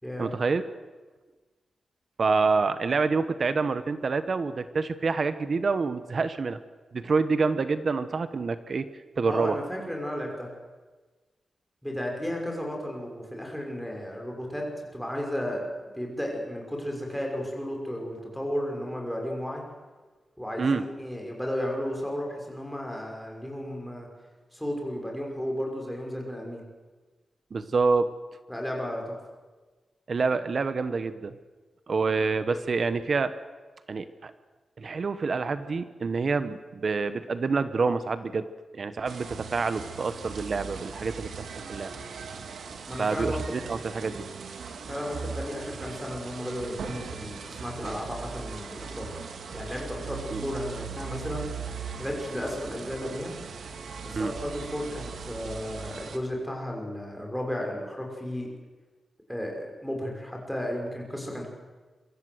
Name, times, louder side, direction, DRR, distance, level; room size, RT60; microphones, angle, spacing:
voice 1, 0.2-0.6 2.2-6.6 6.9-8.9 9.2-9.5 20.6-20.8 27.5-28.1 30.1-31.3 31.9-33.3 33.9-34.3 34.8-38.4 38.7-41.9 43.0-44.2 50.3-50.4 54.1-54.3, right 4 dB, 40° right, 11 dB, 1.1 m, -27 dB
voice 2, 9.3-10.5 11.8-14.7 14.9-15.7 15.9-19.6 20.4-24.1 24.5-26.6 28.5-29.2 42.9-43.4 44.9-49.1 49.5-51.5 52.0-53.3 54.0-58.5 59.3-61.5, equal, ahead, 0 dB, 6.2 m, -33 dB
sound 1, 39.1-56.2, right 5 dB, 75° right, 2.8 m, -39 dB
26.5 x 24.5 x 8.1 m, 1.3 s
wide cardioid pair, 175°, 0 cm